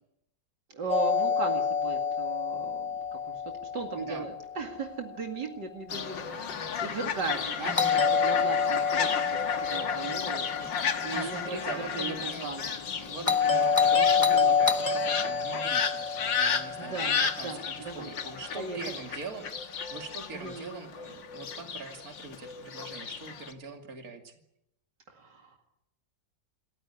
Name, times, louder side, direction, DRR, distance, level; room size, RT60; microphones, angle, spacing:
voice 1, 0.7-3.4 3.7-10.5 10.9-12.7 13.2-13.7 14.2-14.5 16.8-17.2 17.4-18.1 18.6-19.0 20.3-20.7 25.1-25.5, right 4 dB, 70° right, 3 dB, 2.8 m, -37 dB
Doorbell, 0.9-4.9 7.8-12.0 13.2-17.7, left 6 dB, 20° left, 1.2 m, -28 dB
voice 2, 4.0-4.3 7.5-8.0 10.6-10.8 11.1-12.5 13.0-24.3, right 4 dB, 55° right, 4 dB, 3.0 m, -42 dB
Fowl, 5.9-23.5, left 6 dB, 90° left, 2.2 m, -33 dB
27.5 x 14.5 x 9.9 m, 0.81 s
omnidirectional pair, 1.9 m